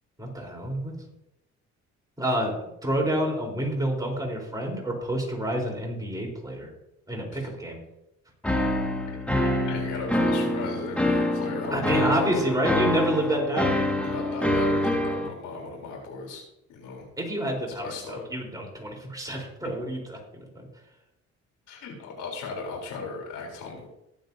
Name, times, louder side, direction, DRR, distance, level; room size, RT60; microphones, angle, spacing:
voice 1, 0.2-1.0 2.2-2.5 2.8-6.7 7.1-7.8 11.7-13.8 17.2-20.2, right 1 dB, 10° right, -1 dB, 4.0 m, -28 dB
sound 1, 8.4-15.3, left 1 dB, 5° left, 1.9 m, -25 dB
voice 2, 9.4-12.6 14.0-16.4 16.7-17.1 17.8-18.2 21.7-23.8, left 4 dB, 80° left, 0 dB, 3.8 m, -36 dB
21.0 x 7.4 x 2.8 m, 0.87 s
cardioid pair, 90°, 30 cm